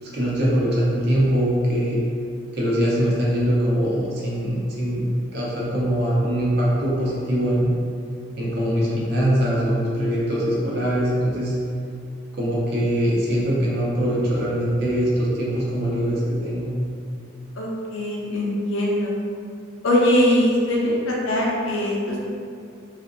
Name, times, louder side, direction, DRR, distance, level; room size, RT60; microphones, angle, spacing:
voice 1, 0.0-2.0 2.5-7.7 8.4-11.5 12.3-16.7, equal, 50° right, -6 dB, 0.7 m, -22 dB
voice 2, 17.6-19.1 19.8-22.3, left 1 dB, 75° left, -4 dB, 0.6 m, -21 dB
2.7 x 2.4 x 2.5 m, 2.3 s
head